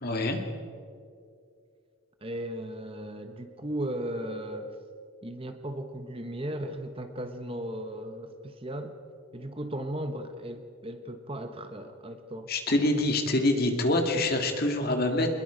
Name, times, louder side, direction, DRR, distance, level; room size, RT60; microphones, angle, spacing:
voice 1, 0.0-0.4 12.5-15.3, left 1 dB, 45° left, 4 dB, 2.2 m, -25 dB
voice 2, 2.2-4.7 5.2-8.9 9.3-12.5, right 1 dB, 25° right, 7 dB, 1.1 m, -36 dB
24.5 x 21.0 x 5.1 m, 2.4 s
head